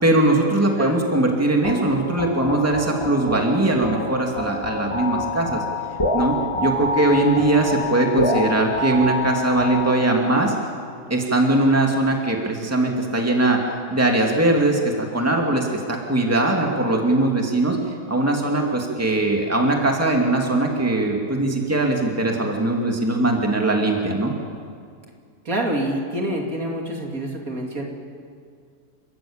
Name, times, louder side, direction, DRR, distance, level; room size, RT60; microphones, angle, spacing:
voice 1, 0.0-5.6 6.1-10.5 11.1-13.6 13.9-17.8 18.1-24.3, right 2 dB, 10° right, 1 dB, 2.4 m, -20 dB
sound 1, 1.6-10.4, left 2 dB, 20° left, 2.0 m, -27 dB
voice 2, 25.4-27.8, right 1 dB, 60° right, 0 dB, 3.2 m, -26 dB
29.5 x 14.0 x 8.8 m, 2.2 s
omnidirectional pair, 1.7 m